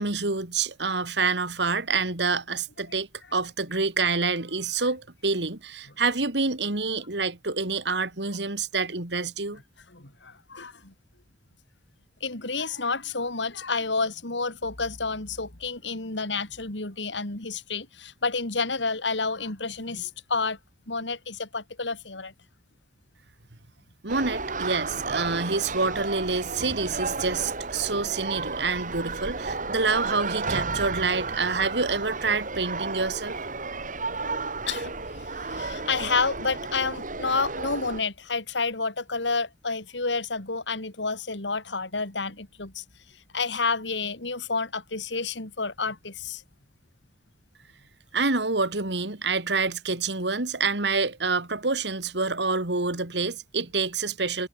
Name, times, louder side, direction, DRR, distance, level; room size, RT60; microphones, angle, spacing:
voice 1, 0.0-9.6 24.0-33.4 48.1-54.5, right 4 dB, 70° right, 2.8 m, -27 dB
voice 2, 9.9-10.9 12.2-20.6 20.9-22.3 34.7-34.9 35.4-42.8 43.3-46.4, left 4 dB, 90° left, 3.6 m, -30 dB
sound 1, 24.1-38.0, right 3 dB, 50° right, 7.0 m, -32 dB
head